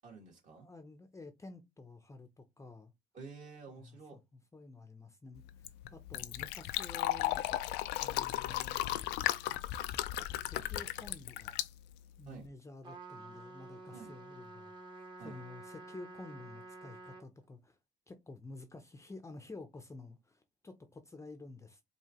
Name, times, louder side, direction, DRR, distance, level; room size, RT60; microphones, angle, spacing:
voice 1, 0.0-0.7 3.1-4.2 12.3-12.5 13.9-14.1 15.2-15.4, right 4 dB, 50° right, 2.2 m, -50 dB
voice 2, 0.6-2.9 3.7-7.4 8.0-9.1 9.7-9.9 10.2-11.6 12.2-14.7 15.2-17.8 18.1-21.8, left 3 dB, 15° left, 0.6 m, -51 dB
Fill (with liquid), 5.4-12.5, left 14 dB, 90° left, 0.4 m, -36 dB
Trumpet, 12.8-17.3, right 2 dB, 25° right, 1.1 m, -50 dB
4.7 x 2.7 x 2.9 m
cardioid pair, 110°, 17 cm